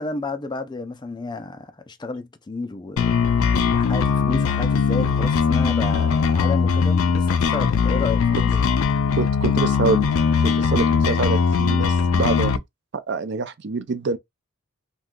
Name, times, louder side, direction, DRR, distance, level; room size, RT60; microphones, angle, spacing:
voice 1, 0.0-3.1 3.7-8.6, left 3 dB, 20° left, 0.4 m, -31 dB
sound 1, 3.0-12.6, left 6 dB, 85° left, 0.4 m, -20 dB
voice 2, 9.2-10.1 10.4-12.6 12.9-14.2, right 4 dB, 55° right, 0.5 m, -26 dB
2.7 x 2.2 x 3.6 m
head